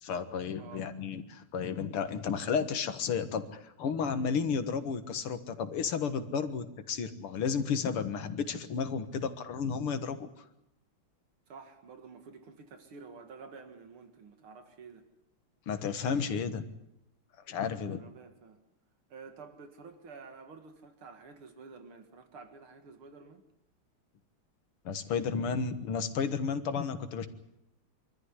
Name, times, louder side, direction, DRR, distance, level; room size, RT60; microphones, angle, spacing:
voice 1, 0.0-10.3 15.7-16.7 17.5-18.0 24.9-27.3, left 6 dB, 80° left, 10 dB, 2.4 m, -32 dB
voice 2, 0.6-0.9 11.5-15.1 17.9-18.6 19.1-23.4, right 5 dB, 75° right, 7 dB, 2.7 m, -50 dB
25.0 x 14.0 x 9.8 m, 0.84 s
omnidirectional pair, 2.4 m